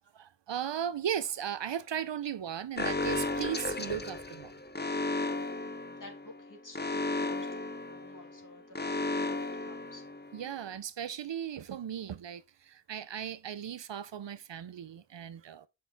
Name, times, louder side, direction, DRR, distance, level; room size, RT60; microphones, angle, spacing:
voice 1, 0.1-4.5 10.3-15.7, right 9 dB, 75° right, 0.7 m, -37 dB
Alarm, 2.8-10.5, left 2 dB, 25° left, 0.8 m, -34 dB
voice 2, 5.6-10.0, left 2 dB, 45° left, 2.9 m, -53 dB
8.6 x 5.7 x 4.0 m
wide cardioid pair, 85°, 44 cm